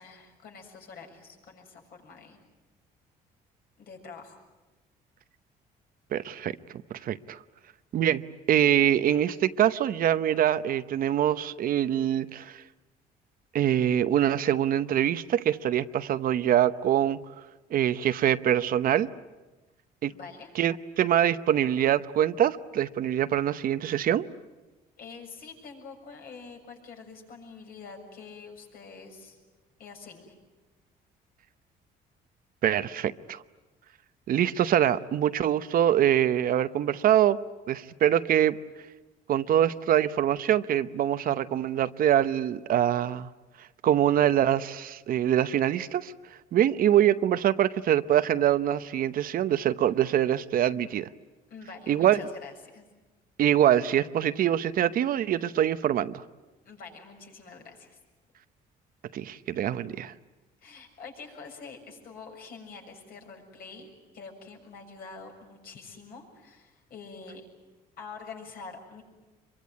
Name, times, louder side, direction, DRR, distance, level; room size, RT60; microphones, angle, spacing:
voice 1, 0.0-2.4 3.8-4.4 20.1-20.5 25.0-29.4 29.8-30.3 51.5-52.9 56.6-58.0 59.8-60.0 60.6-67.5 68.0-69.0, left 4 dB, 60° left, 7.0 m, -46 dB
voice 2, 6.1-6.5 7.0-7.4 7.9-12.6 13.5-17.2 17.7-19.1 20.0-20.1 20.5-24.3 32.6-33.4 34.3-37.4 37.7-38.6 39.3-43.3 43.8-46.1 46.5-51.1 51.9-52.2 53.4-56.2 59.1-60.1, right 11 dB, 55° right, 0.8 m, -24 dB
25.5 x 23.5 x 9.5 m
cardioid pair, 110°, 17 cm